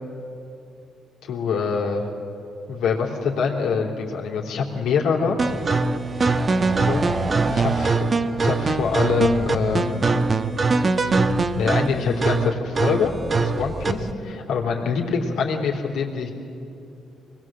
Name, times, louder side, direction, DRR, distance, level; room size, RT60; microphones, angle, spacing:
voice 1, 1.2-2.1 2.7-5.4 6.8-8.1 8.4-10.0 11.6-13.1 13.4-16.3, left 5 dB, 85° left, -1 dB, 3.4 m, -25 dB
sound 1, 5.4-14.1, right 3 dB, 35° right, 1.2 m, -22 dB
23.5 x 20.5 x 7.7 m, 2.7 s
cardioid pair, 90°, 0 cm